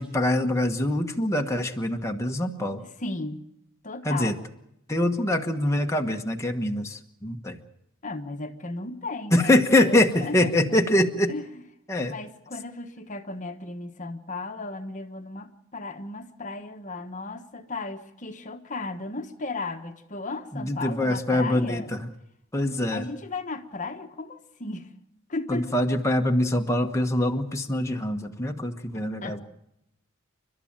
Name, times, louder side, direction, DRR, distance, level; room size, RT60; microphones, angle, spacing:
voice 1, 0.0-2.8 4.0-4.3 4.9-7.6 9.3-11.3 11.9-12.1 20.5-22.0 22.5-23.1 25.5-29.4, left 1 dB, 15° left, 3 dB, 1.3 m, -24 dB
voice 2, 2.8-3.5 3.8-4.4 8.0-10.5 11.3-11.6 12.0-21.9 22.9-24.9 25.3-25.7 29.2-29.4, left 3 dB, 35° left, 7 dB, 1.3 m, -35 dB
29.5 x 12.5 x 8.8 m, 0.81 s
head